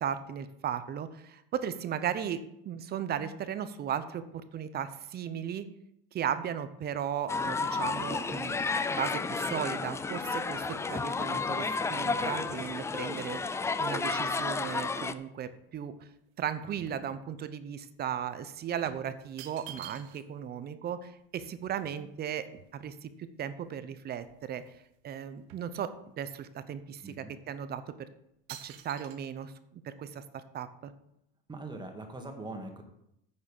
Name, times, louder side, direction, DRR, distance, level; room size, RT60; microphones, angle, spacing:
voice 1, 0.0-5.7 6.1-13.4 13.8-15.9 16.4-22.5 22.7-24.6 25.0-28.1 28.6-30.9, right 9 dB, 35° right, 13 dB, 0.8 m, -36 dB
sound 1, 7.3-15.1, left 4 dB, 10° left, 0.4 m, -32 dB
sound 2, 10.3-15.0 15.5-17.6 17.9-18.1 18.8-20.4 20.7-20.8 21.0-23.2 23.7-23.8 24.1-24.9 25.1-26.4 26.9-27.1 27.7-28.0 28.5-29.2, right 11 dB, 65° right, 1.2 m, -52 dB
voice 2, 27.0-27.3 31.5-32.8, right 2 dB, 15° right, 4 dB, 1.8 m, -42 dB
9.8 x 6.4 x 5.4 m, 0.79 s
supercardioid pair, 120°, 30 cm